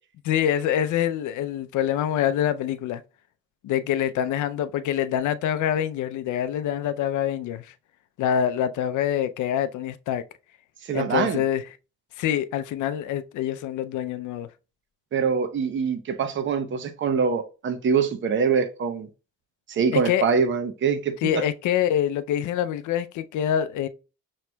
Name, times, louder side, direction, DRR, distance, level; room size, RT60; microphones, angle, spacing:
voice 1, 0.2-3.0 3.6-7.7 8.2-10.2 10.9-11.6 12.2-14.5 19.9-20.2 21.2-23.9, left 10 dB, 75° left, 0.5 m, -25 dB
voice 2, 10.8-11.4 15.1-19.1 19.7-21.2, right 6 dB, 40° right, 0.7 m, -24 dB
5.8 x 3.1 x 2.2 m
cardioid pair, 90°, 30 cm